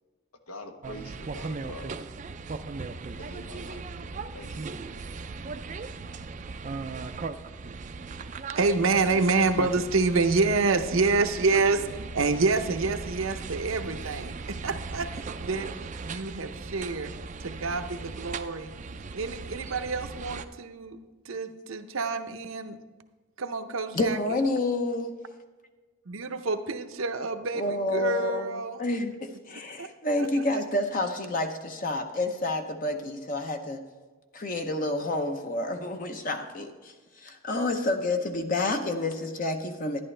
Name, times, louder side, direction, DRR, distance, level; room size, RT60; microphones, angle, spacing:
voice 1, 0.5-1.9 3.2-3.8 4.3-4.6, left 1 dB, 85° left, 5 dB, 1.2 m, -44 dB
sound 1, 0.8-20.4, right 4 dB, 35° right, 0.4 m, -38 dB
voice 2, 8.6-15.7 16.0-17.1 17.4-18.7 19.1-21.0 21.2-22.8 23.4-24.2 26.1-27.6 27.9-28.8 29.8-29.9 30.2-30.4, right 3 dB, 70° right, 9 dB, 0.7 m, -27 dB
voice 3, 23.9-25.2 27.6-28.5 28.8-33.8 34.3-40.0, left 2 dB, 40° left, 5 dB, 0.7 m, -29 dB
11.0 x 11.0 x 3.3 m, 1.3 s
head